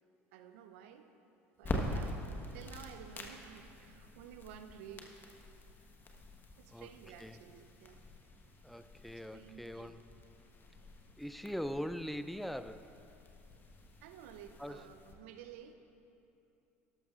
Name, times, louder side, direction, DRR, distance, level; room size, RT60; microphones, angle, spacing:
voice 1, 0.3-1.1 1.6-2.2 2.5-5.2 6.6-8.0 9.3-9.9 14.0-15.7, right 9 dB, 70° right, 8 dB, 0.6 m, -53 dB
sound 1, 1.6-15.1, left 1 dB, 30° left, 1.3 m, -45 dB
voice 2, 8.6-10.1 11.2-12.9 14.6-14.9, equal, ahead, 11 dB, 0.4 m, -41 dB
13.0 x 12.0 x 2.5 m, 2.8 s
hypercardioid pair, 70°, 7 cm